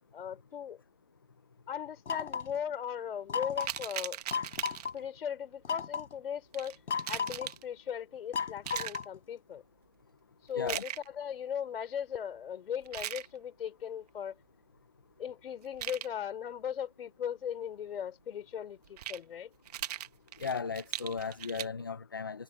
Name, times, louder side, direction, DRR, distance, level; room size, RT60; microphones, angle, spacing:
voice 1, 0.1-0.8 1.7-4.2 4.9-6.8 7.0-9.6 10.4-14.4 15.2-19.5, left 8 dB, 50° left, 4.4 m, -38 dB
sound 1, 2.1-2.6 3.3-3.8 4.3-4.9 5.6-6.1 6.9-7.5 8.3-9.2, left 6 dB, 70° left, 7.3 m, -34 dB
sound 2, 3.6-5.0 6.5-7.6 8.6-9.0 10.6-11.1 12.8-13.3 15.6-16.1 18.8-19.2 19.6-21.7, right 11 dB, 30° right, 1.3 m, -39 dB
voice 2, 20.4-22.4, left 5 dB, 20° left, 0.5 m, -36 dB
hypercardioid pair, 160°, 37 cm